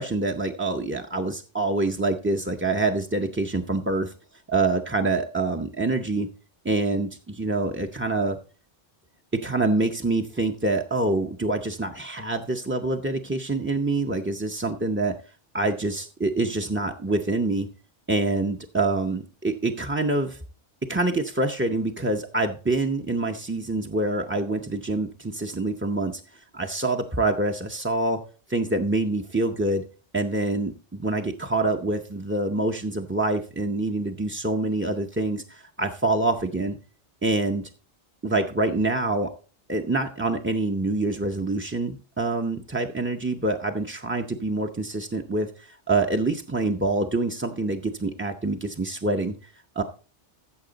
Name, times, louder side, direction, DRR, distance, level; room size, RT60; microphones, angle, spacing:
voice 1, 0.0-4.1 4.5-6.3 6.6-8.4 9.4-15.1 15.5-17.7 18.1-20.4 20.9-28.2 28.5-29.8 30.1-36.8 37.2-37.7 38.2-39.3 39.7-49.3 49.8-49.9, right 2 dB, 15° right, 2 dB, 0.4 m, -26 dB
14.0 x 6.9 x 3.9 m, 0.38 s
omnidirectional pair, 1.2 m